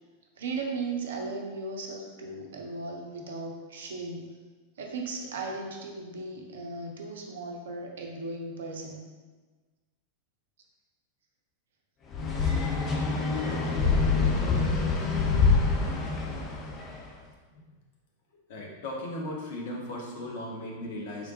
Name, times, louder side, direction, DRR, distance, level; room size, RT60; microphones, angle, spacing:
voice 1, 0.4-4.4 4.8-9.1, right 3 dB, 60° right, 1 dB, 0.6 m, -36 dB
sound 1, 12.1-17.0, left 4 dB, 30° left, 0.6 m, -26 dB
voice 2, 18.5-21.3, left 1 dB, 55° left, -2 dB, 0.9 m, -37 dB
4.3 x 3.4 x 2.8 m, 1.3 s
figure-of-eight pair, 90°, 0 cm